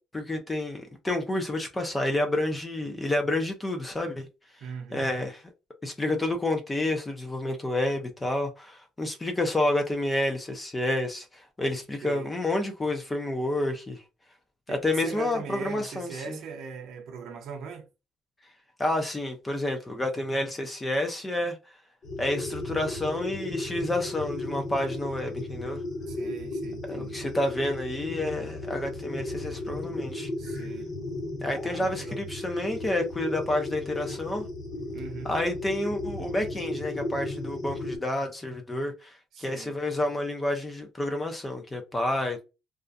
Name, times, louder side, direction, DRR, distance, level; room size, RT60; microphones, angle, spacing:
voice 1, 0.1-4.3 4.9-5.4 5.8-14.0 14.7-16.4 18.8-21.6 22.2-25.8 26.9-30.3 31.4-34.4 35.2-42.4, left 1 dB, 10° left, 0.4 m, -29 dB
voice 2, 4.6-5.1 12.0-12.3 14.7-17.9 26.1-27.2 30.4-30.9 31.6-32.2 34.9-35.3 39.3-39.8, right 6 dB, 55° right, 0.6 m, -40 dB
sound 1, 22.0-38.0, left 2 dB, 40° left, 0.8 m, -35 dB
2.4 x 2.1 x 2.5 m
cardioid pair, 170°, 0 cm